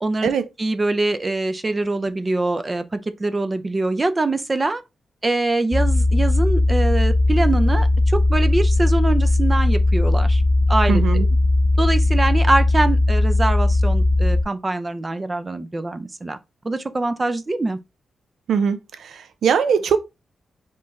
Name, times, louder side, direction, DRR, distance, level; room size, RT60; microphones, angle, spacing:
voice 1, 0.6-4.8 5.2-10.4 10.7-11.0 11.8-16.4 16.6-17.8, right 2 dB, 25° right, 0.5 m, -23 dB
sound 1, 5.7-14.4, left 2 dB, 35° left, 0.6 m, -18 dB
voice 2, 10.9-11.3 18.5-20.0, right 7 dB, 80° right, 0.5 m, -21 dB
4.4 x 3.2 x 3.4 m
cardioid pair, 110°, 0 cm